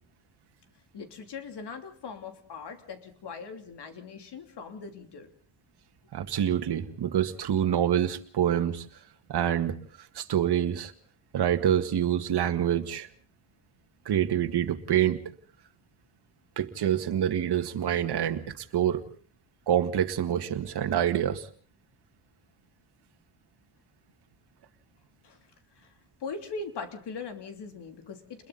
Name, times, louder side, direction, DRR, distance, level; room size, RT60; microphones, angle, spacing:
voice 1, 0.9-5.3 25.2-28.5, left 4 dB, 55° left, 7 dB, 3.3 m, -41 dB
voice 2, 6.1-8.9 9.3-10.9 11.3-13.1 14.1-15.2 16.6-19.0 19.7-21.5, right 10 dB, 50° right, 6 dB, 2.0 m, -26 dB
30.0 x 21.5 x 4.1 m, 0.43 s
cardioid pair, 115°, 49 cm